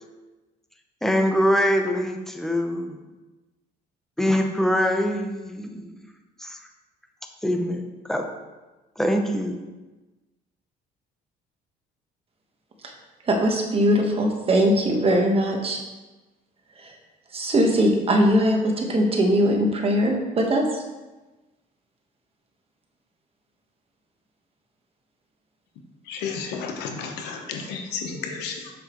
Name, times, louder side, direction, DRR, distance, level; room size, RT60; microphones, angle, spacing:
voice 1, 1.0-2.9 4.2-5.9 6.4-6.6 7.4-7.8 8.1-8.2 9.0-9.5, equal, ahead, 4 dB, 0.8 m, -23 dB
voice 2, 13.3-15.8 16.8-16.9 17.3-20.8, equal, 35° right, 1 dB, 1.3 m, -21 dB
voice 3, 26.1-28.7, left 5 dB, 85° left, 4 dB, 1.0 m, -32 dB
7.1 x 6.6 x 3.1 m, 1.2 s
cardioid pair, 110°, 17 cm